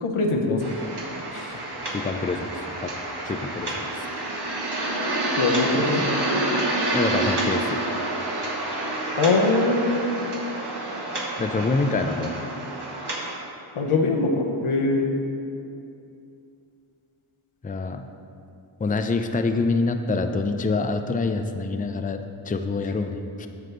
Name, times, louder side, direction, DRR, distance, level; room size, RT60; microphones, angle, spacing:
voice 1, 0.0-0.8 1.3-1.6 5.4-6.1 9.2-10.2 13.8-15.1, left 3 dB, 85° left, 1 dB, 0.8 m, -23 dB
sound 1, 0.6-13.3, right 2 dB, 55° right, 1.3 m, -28 dB
voice 2, 1.9-2.5 2.8-2.9 3.2-4.0 6.9-7.8 11.4-12.3 17.6-18.1 18.8-23.5, left 3 dB, 20° left, 7 dB, 0.4 m, -26 dB
9.3 x 6.5 x 3.3 m, 2.6 s
wide cardioid pair, 60°, 49 cm